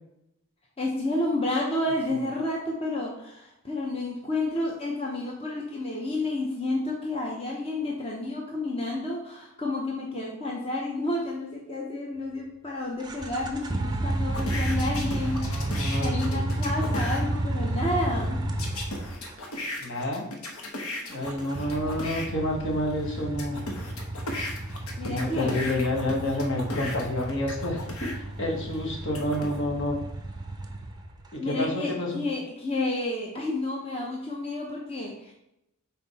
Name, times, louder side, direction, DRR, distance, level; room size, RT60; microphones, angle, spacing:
voice 1, 0.8-18.5 25.0-25.5 31.4-35.3, left 2 dB, 25° left, -2 dB, 0.8 m, -30 dB
sound 1, 13.0-19.4 21.1-31.2, right 1 dB, 20° right, 0.5 m, -31 dB
sound 2, 14.3-17.2 18.6-22.3 22.9-28.2 28.7-29.6, left 2 dB, 80° left, 1.1 m, -36 dB
voice 2, 15.2-16.4 19.8-20.3 21.1-23.6 25.0-30.0 31.3-32.2, left 1 dB, 55° left, -1 dB, 1.3 m, -29 dB
5.8 x 4.3 x 4.2 m, 0.84 s
head